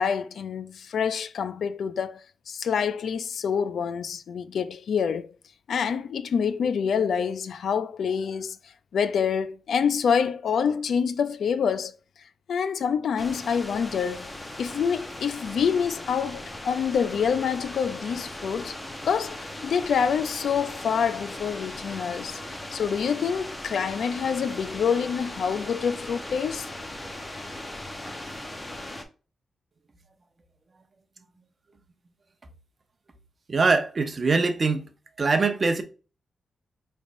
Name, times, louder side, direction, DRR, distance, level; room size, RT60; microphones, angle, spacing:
voice 1, 0.0-5.3 5.7-8.6 8.9-11.9 12.5-14.3 14.6-18.8 19.0-26.7, left 7 dB, 75° left, 0.3 m, -26 dB
sound 1, 13.2-29.0, left 1 dB, 20° left, 0.8 m, -38 dB
voice 2, 33.5-34.9 35.2-35.8, right 4 dB, 40° right, 0.7 m, -23 dB
5.2 x 3.3 x 2.5 m
cardioid pair, 110°, 0 cm